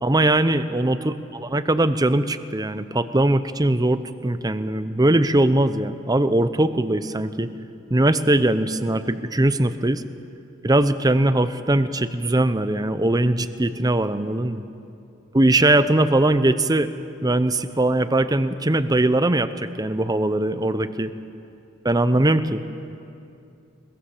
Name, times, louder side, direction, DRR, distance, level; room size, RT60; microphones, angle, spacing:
voice 1, 0.0-7.5 7.9-10.0 10.6-14.6 15.3-16.9 17.2-21.1 21.8-22.6, right 1 dB, 20° right, 12 dB, 0.7 m, -20 dB
22.5 x 21.0 x 7.2 m, 2.6 s
head